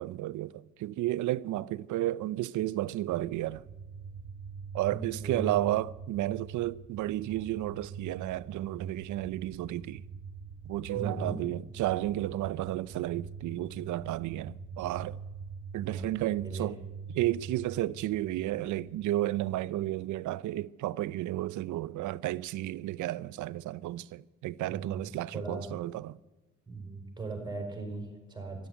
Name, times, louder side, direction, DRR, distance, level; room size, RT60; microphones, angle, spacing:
voice 1, 0.0-3.6 4.7-10.0 10.7-15.2 15.7-16.8 17.1-26.2, right 15 dB, 75° right, 0.5 m, -32 dB
sound 1, 3.1-19.9, right 5 dB, 55° right, 1.7 m, -45 dB
voice 2, 4.9-5.6 10.9-11.4 15.8-16.2 16.4-16.7 24.7-25.7 26.7-28.7, right 3 dB, 15° right, 5.3 m, -38 dB
13.0 x 11.5 x 9.6 m
cardioid pair, 90°, 30 cm